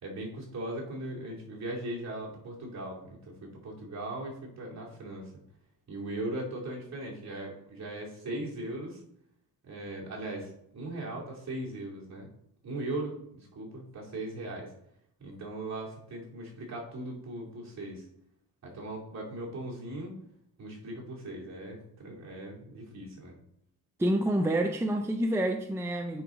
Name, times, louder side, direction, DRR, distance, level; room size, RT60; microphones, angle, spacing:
voice 1, 0.0-5.3 5.9-9.0 9.6-12.3 12.6-14.7 15.2-18.0 18.6-20.1 20.6-23.3, right 1 dB, 45° right, -4 dB, 2.6 m, -39 dB
voice 2, 24.0-26.2, right 1 dB, 5° right, 4 dB, 0.5 m, -28 dB
9.1 x 4.7 x 3.7 m, 0.73 s
cardioid pair, 125°, 37 cm